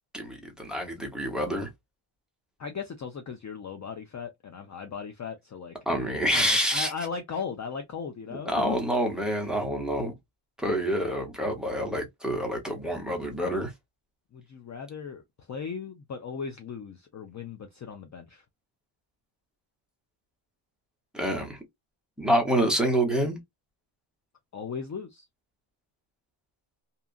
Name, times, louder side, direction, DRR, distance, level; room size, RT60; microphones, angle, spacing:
voice 1, 0.1-1.7 5.9-6.9 8.5-10.1 10.6-13.7 21.1-21.6 22.2-23.4, equal, ahead, 0.8 m, -27 dB
voice 2, 2.6-5.7 6.3-9.0 14.3-18.4 24.5-25.3, left 6 dB, 40° left, 0.4 m, -37 dB
2.7 x 2.4 x 2.3 m
wide cardioid pair, 140°, 50 cm